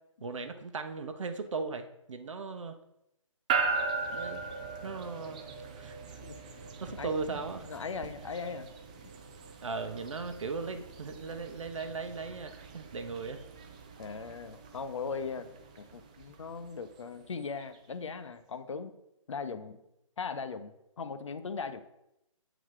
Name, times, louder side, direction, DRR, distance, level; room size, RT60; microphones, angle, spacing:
voice 1, 0.2-2.8 4.1-4.4 4.8-5.4 5.8-6.2 6.8-7.7 9.6-13.4, right 4 dB, 65° right, 7 dB, 1.0 m, -37 dB
sound 1, 3.5-17.8, right 4 dB, 15° right, 0.3 m, -39 dB
voice 2, 6.9-8.7 14.0-15.5 15.8-18.9 19.3-19.8 20.2-21.8, left 5 dB, 65° left, 11 dB, 0.7 m, -39 dB
7.8 x 4.0 x 4.7 m, 0.84 s
hypercardioid pair, 155°, 17 cm